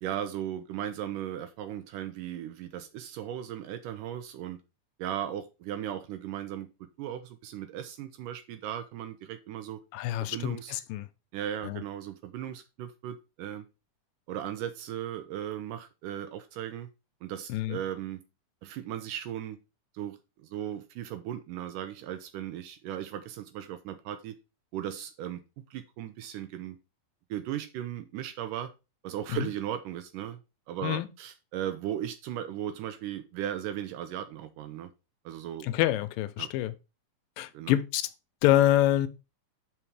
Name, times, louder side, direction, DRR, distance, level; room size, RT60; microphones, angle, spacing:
voice 1, 0.0-4.6 5.0-9.8 10.2-10.8 11.3-13.7 14.3-16.9 17.2-18.2 18.6-19.6 19.9-24.4 24.7-25.4 25.7-26.8 27.3-28.7 29.0-30.4 30.7-34.9 35.3-35.7 36.4-36.5 37.5-37.7, right 11 dB, 80° right, 2.1 m, -37 dB
voice 2, 9.9-11.1 11.6-11.8 17.5-17.8 30.8-31.1 35.6-36.7 37.4-38.0 38.4-39.1, left 14 dB, 85° left, 2.3 m, -26 dB
5.8 x 5.3 x 4.8 m
omnidirectional pair, 3.9 m